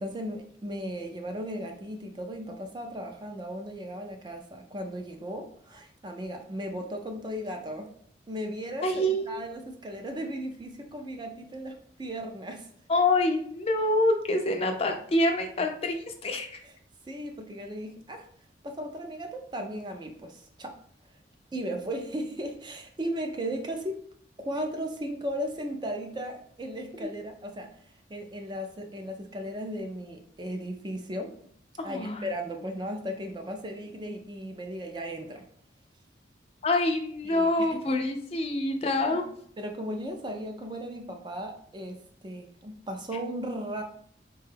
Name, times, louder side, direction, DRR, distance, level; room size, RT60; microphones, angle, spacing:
voice 1, 0.0-7.9 8.3-12.7 17.0-18.3 18.6-20.8 21.5-24.0 24.4-27.7 28.1-31.4 31.8-35.5 37.2-38.0 39.1-39.2 39.6-43.8, equal, 25° right, 4 dB, 0.4 m, -36 dB
voice 2, 8.8-9.4 12.9-16.6 27.0-27.1 31.8-32.2 36.6-39.3, left 1 dB, 35° left, 4 dB, 0.4 m, -26 dB
4.1 x 2.3 x 3.3 m, 0.62 s
head